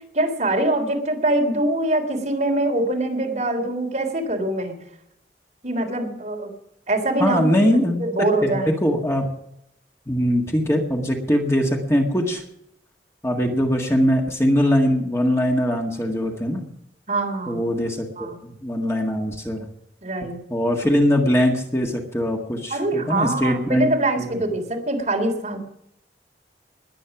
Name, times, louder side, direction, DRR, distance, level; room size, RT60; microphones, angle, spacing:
voice 1, 0.1-4.8 5.6-6.5 6.9-7.6 8.0-8.8 17.1-17.6 18.2-18.4 20.0-20.4 22.7-25.6, right 2 dB, 40° right, 2 dB, 3.5 m, -23 dB
voice 2, 7.2-8.0 8.4-9.3 10.1-12.4 13.2-16.7 17.5-19.7 20.5-23.9 24.2-24.3, equal, 15° left, 1 dB, 1.8 m, -21 dB
20.5 x 8.8 x 6.0 m, 0.77 s
head